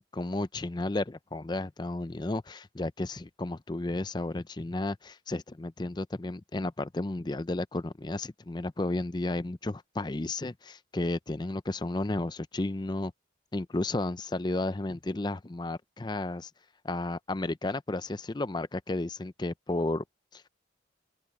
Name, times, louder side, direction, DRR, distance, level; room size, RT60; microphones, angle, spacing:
voice 1, 0.0-13.1 13.5-16.5 16.8-20.0 20.3-20.5, left 2 dB, 25° left, 0.5 m, -33 dB
open air
head